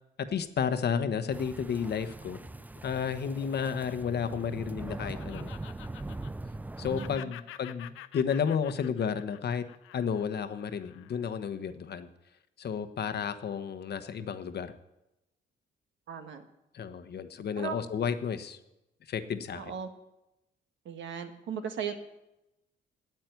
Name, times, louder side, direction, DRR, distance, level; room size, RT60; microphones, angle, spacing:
voice 1, 0.2-2.4 2.8-5.5 6.8-9.6 9.9-12.1 12.6-14.7 16.7-18.6 19.1-19.7, left 7 dB, 55° left, 11 dB, 1.1 m, -32 dB
sound 1, 1.3-7.2, right 2 dB, 10° right, 0.3 m, -41 dB
Laughter, 2.4-6.7 6.9-11.4, left 14 dB, 90° left, 0.6 m, -49 dB
voice 2, 6.8-7.3 16.1-16.4 17.6-17.8 19.5-19.9 20.8-21.9, right 7 dB, 70° right, 7 dB, 1.6 m, -37 dB
9.2 x 8.5 x 9.5 m, 0.92 s
cardioid pair, 90°, 20 cm